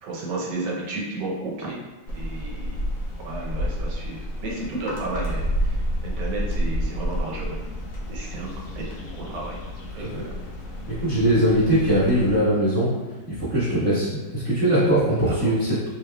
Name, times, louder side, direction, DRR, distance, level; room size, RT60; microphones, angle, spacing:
voice 1, 0.0-1.8 2.1-2.9 3.2-7.6 8.1-9.6 9.9-10.4 15.2-15.5, right 2 dB, 70° right, -3 dB, 1.4 m, -33 dB
sound 1, 2.1-12.4, equal, 70° left, 0.8 m, -30 dB
voice 2, 10.9-12.9 13.3-15.7, right 1 dB, 5° left, -12 dB, 1.1 m, -21 dB
4.2 x 3.3 x 2.3 m, 1.2 s
omnidirectional pair, 2.0 m